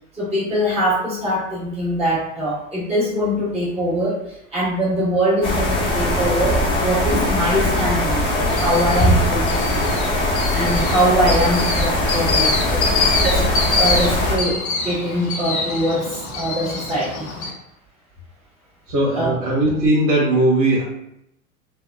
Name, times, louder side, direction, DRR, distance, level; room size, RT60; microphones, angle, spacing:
voice 1, 0.1-4.2 4.5-12.5 13.2-17.3 19.1-19.3, equal, 15° right, -10 dB, 1.3 m, -23 dB
sound 1, 5.4-14.4, left 1 dB, 15° left, 0.3 m, -20 dB
sound 2, 8.5-17.5, left 3 dB, 80° left, 0.7 m, -25 dB
voice 2, 18.9-20.8, right 1 dB, 60° right, -6 dB, 1.1 m, -19 dB
2.8 x 2.1 x 2.3 m, 0.80 s
hypercardioid pair, 95°, 42 cm